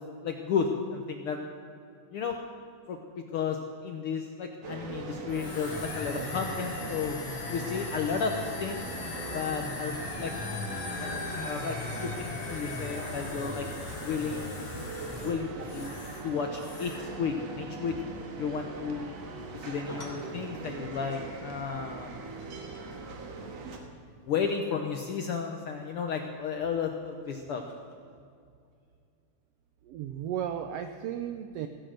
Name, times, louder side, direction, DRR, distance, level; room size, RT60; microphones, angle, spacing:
voice 1, 0.2-1.4 2.1-2.4 2.9-7.2 7.5-8.8 9.3-10.3 11.0-13.7 14.0-14.8 15.2-19.1 19.5-22.1 24.3-27.6, left 6 dB, 70° left, 3 dB, 1.3 m, -33 dB
sound 1, 4.6-23.8, right 4 dB, 65° right, 2.4 m, -41 dB
sound 2, 5.3-16.3 16.6-17.1, left 3 dB, 50° left, 2.5 m, -38 dB
sound 3, 19.0-28.0, left 1 dB, 20° left, 3.0 m, -53 dB
voice 2, 29.9-31.7, right 9 dB, 85° right, 7 dB, 1.4 m, -34 dB
16.5 x 10.0 x 6.5 m, 2.4 s
omnidirectional pair, 3.5 m